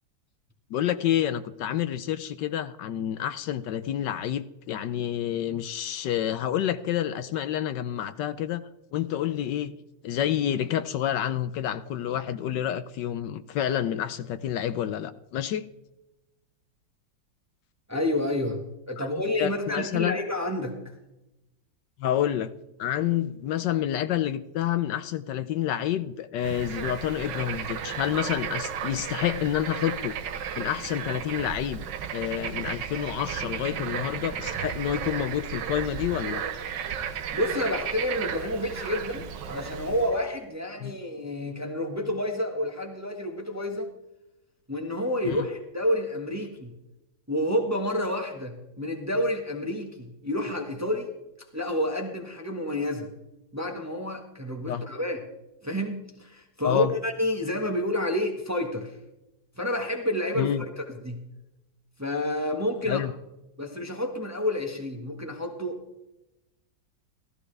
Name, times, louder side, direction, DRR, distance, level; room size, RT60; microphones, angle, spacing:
voice 1, 0.7-8.6 8.9-9.7 10.0-15.6 19.0-19.1 19.4-20.2 22.0-22.5 22.8-30.2 30.6-31.8 32.1-36.4 40.8-40.9 45.2-45.5 54.7-54.8 56.6-56.9 60.4-60.6 62.9-63.1, left 11 dB, 75° left, 12 dB, 1.2 m, -28 dB
voice 2, 17.9-18.6 18.9-20.8 37.3-43.9 44.7-46.7 47.3-51.1 51.5-53.1 53.5-55.2 55.6-58.9 59.6-61.2 62.0-63.0 63.6-65.8, left 1 dB, 10° right, 3 dB, 1.1 m, -29 dB
Bird / Frog, 26.4-40.2, right 8 dB, 70° right, 1.5 m, -34 dB
15.5 x 15.5 x 3.3 m, 0.93 s
omnidirectional pair, 2.0 m